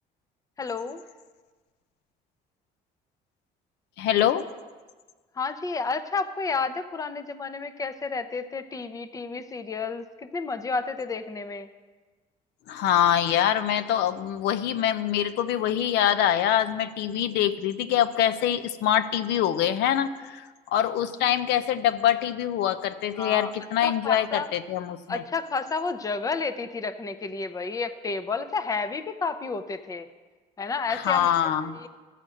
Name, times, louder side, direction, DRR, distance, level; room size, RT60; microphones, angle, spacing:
voice 1, 0.6-1.0 5.4-10.0 10.3-11.7 23.2-23.5 23.8-24.5 25.1-30.1 30.6-31.3 31.7-31.9, left 4 dB, 20° left, 11 dB, 0.6 m, -31 dB
voice 2, 4.0-4.5 12.7-20.4 20.7-25.2 30.9-31.8, left 10 dB, 85° left, 11 dB, 0.6 m, -24 dB
12.5 x 5.0 x 7.6 m, 1.4 s
cardioid pair, 110°, 17 cm